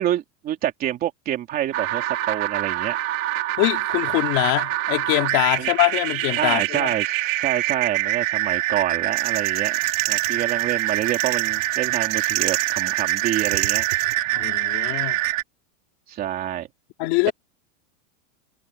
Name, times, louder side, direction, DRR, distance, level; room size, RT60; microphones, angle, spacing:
voice 1, 0.0-3.0 5.6-5.7 6.4-9.8 10.1-13.9 16.1-16.7, right 12 dB, 25° right, 3.2 m, -27 dB
sound 1, 1.7-15.4, right 15 dB, 80° right, 3.4 m, -25 dB
voice 2, 3.6-6.9 14.3-15.2 17.0-17.3, left 23 dB, 35° left, 3.9 m, -23 dB
sound 2, 9.1-14.1, right 17 dB, 60° right, 3.8 m, -30 dB
supercardioid pair, 180°, 39 cm